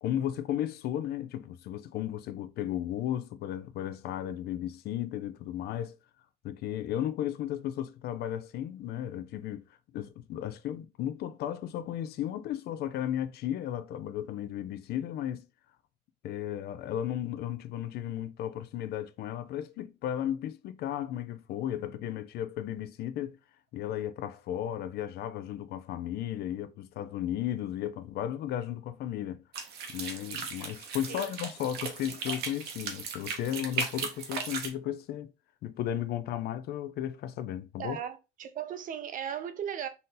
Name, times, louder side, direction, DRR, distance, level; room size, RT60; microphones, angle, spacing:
voice 1, 0.0-6.0 6.4-9.6 9.9-15.5 16.2-23.4 23.7-29.4 29.9-35.3 35.6-38.0, left 11 dB, 70° left, 0.5 m, -34 dB
sound 1, 29.5-34.7, right 5 dB, 75° right, 1.1 m, -37 dB
voice 2, 37.8-39.9, right 9 dB, 50° right, 0.6 m, -37 dB
4.1 x 2.6 x 3.8 m
cardioid pair, 110°, 17 cm